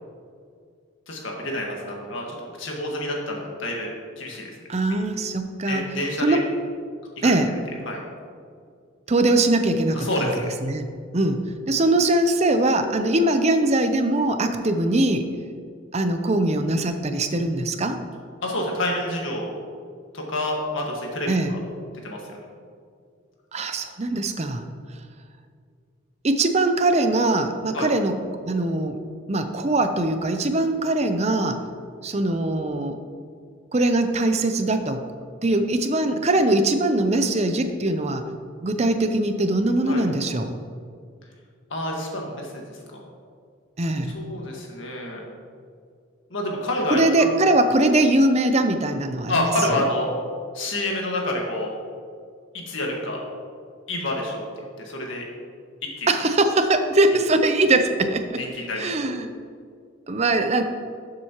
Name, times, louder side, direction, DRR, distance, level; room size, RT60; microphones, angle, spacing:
voice 1, 1.1-3.9 4.2-4.5 5.7-6.4 7.2-7.6 7.9-8.0 10.0-10.4 18.4-19.5 20.1-21.6 22.0-22.2 27.7-27.9 39.9-40.0 41.7-42.8 44.1-45.2 46.3-47.3 49.3-50.1 50.5-51.7 52.5-53.2 53.9-54.4 54.8-55.2 56.0-56.1 58.4-58.9, left 1 dB, 70° left, -1 dB, 1.7 m, -28 dB
voice 2, 4.7-5.9 6.2-6.4 7.2-7.5 9.1-10.3 10.6-10.9 11.1-11.4 11.7-15.3 15.9-18.0 21.3-21.5 23.5-24.6 26.2-28.2 28.5-29.0 29.3-31.6 32.0-33.0 33.7-35.0 35.4-38.3 38.6-40.5 43.8-44.1 46.9-49.8 56.1-58.4 58.8-59.3 60.1-60.6, right 2 dB, 30° right, 7 dB, 0.6 m, -21 dB
12.0 x 7.6 x 3.0 m, 2.2 s
head